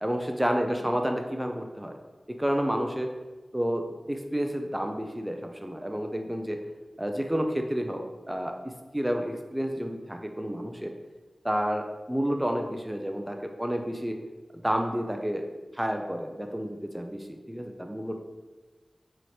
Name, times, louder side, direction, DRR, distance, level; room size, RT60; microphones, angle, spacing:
voice 1, 0.0-1.9 2.3-3.1 3.5-6.6 7.0-10.9 11.4-14.2 14.6-15.5 15.7-18.2, equal, 10° right, 3 dB, 0.3 m, -30 dB
4.1 x 2.8 x 3.1 m, 1.2 s
wide cardioid pair, 75°, 0 cm